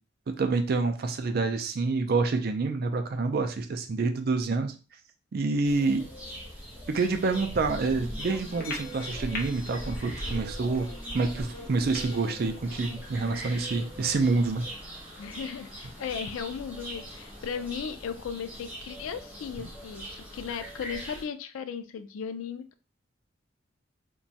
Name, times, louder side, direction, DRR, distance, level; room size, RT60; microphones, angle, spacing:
voice 1, 0.4-4.7 5.3-6.0 6.9-10.9 11.1-14.6, right 3 dB, 50° right, 7 dB, 0.4 m, -27 dB
sound 1, 5.6-21.2, equal, 10° right, 0.7 m, -41 dB
sound 2, 7.8-13.8, equal, 20° left, 1.4 m, -48 dB
sound 3, 8.2-13.2, left 3 dB, 50° left, 0.7 m, -44 dB
voice 2, 15.2-22.7, left 7 dB, 85° left, 10 dB, 0.3 m, -36 dB
3.0 x 2.2 x 2.7 m, 0.35 s
head